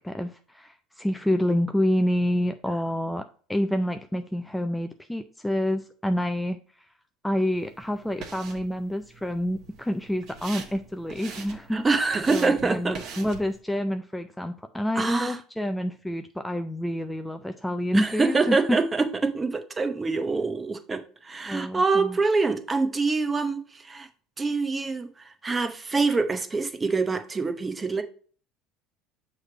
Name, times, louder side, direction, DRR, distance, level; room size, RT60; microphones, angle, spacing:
voice 1, 0.0-6.6 7.2-11.8 12.3-18.8 21.5-22.2, equal, 5° left, 0.4 m, -28 dB
sound 1, 7.5-13.6, right 5 dB, 55° right, 1.2 m, -44 dB
voice 2, 11.7-13.0 15.0-15.4 17.9-24.1 24.4-28.0, right 4 dB, 20° right, 0.8 m, -25 dB
6.3 x 3.2 x 4.8 m
supercardioid pair, 105°, 0 cm